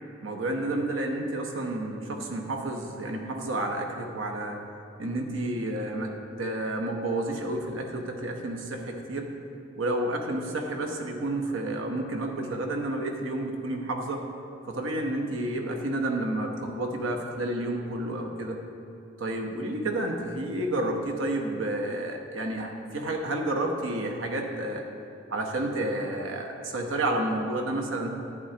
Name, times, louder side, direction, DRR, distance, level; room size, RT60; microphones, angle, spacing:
voice 1, 0.2-4.6 5.0-6.1 6.4-9.3 9.8-14.3 14.7-18.6 19.2-24.8 25.3-28.1, right 1 dB, 80° right, 2 dB, 1.0 m, -30 dB
11.0 x 8.9 x 2.9 m, 2.7 s
head